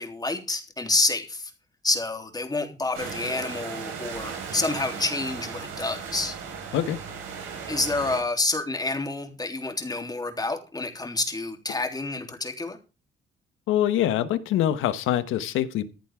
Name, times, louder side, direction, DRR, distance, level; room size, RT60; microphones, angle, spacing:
voice 1, 0.0-1.5 1.8-6.3 7.7-12.8, left 2 dB, 20° left, 4 dB, 3.4 m, -28 dB
sound 1, 2.9-8.2, right 6 dB, 90° right, 5.1 m, -36 dB
voice 2, 13.7-15.9, left 11 dB, 90° left, 12 dB, 1.3 m, -24 dB
15.0 x 11.0 x 3.7 m, 0.31 s
cardioid pair, 90°, 20 cm